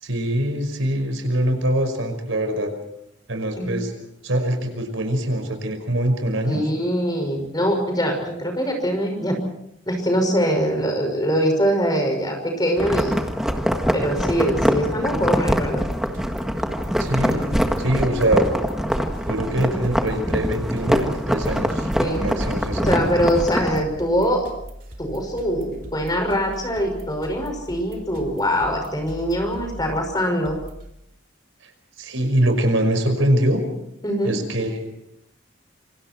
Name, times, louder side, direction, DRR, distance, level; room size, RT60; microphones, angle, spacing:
voice 1, 0.0-2.7 3.3-3.9 4.2-6.6 17.0-18.5 19.3-23.1 31.6-31.7 32.0-33.6 34.2-34.8, right 1 dB, 85° right, 6 dB, 5.5 m, -23 dB
voice 2, 6.5-9.4 9.9-13.1 13.9-15.8 22.0-22.3 22.8-24.5 25.0-30.6 34.0-34.4, equal, 20° left, 4 dB, 5.8 m, -23 dB
sound 1, 12.8-23.8, equal, 5° right, 1.7 m, -23 dB
sound 2, 15.7-30.9, equal, 45° right, 3.2 m, -40 dB
27.5 x 26.0 x 4.5 m, 0.80 s
head